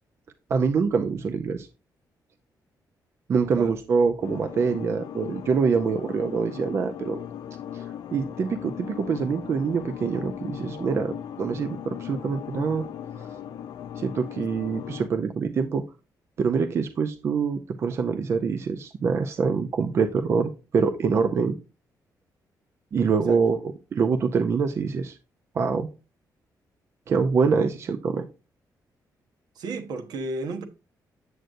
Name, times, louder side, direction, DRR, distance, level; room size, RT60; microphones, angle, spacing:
voice 1, 0.5-1.7 3.3-7.2 7.7-7.8 8.1-12.9 14.0-15.8 16.4-21.6 22.9-25.2 25.5-25.9 27.1-28.3, right 5 dB, 40° right, 0.5 m, -25 dB
sound 1, 4.2-15.1, left 10 dB, 75° left, 0.5 m, -38 dB
voice 2, 29.6-30.7, right 2 dB, 75° right, 1.1 m, -32 dB
7.8 x 7.7 x 2.6 m
wide cardioid pair, 175°, 7 cm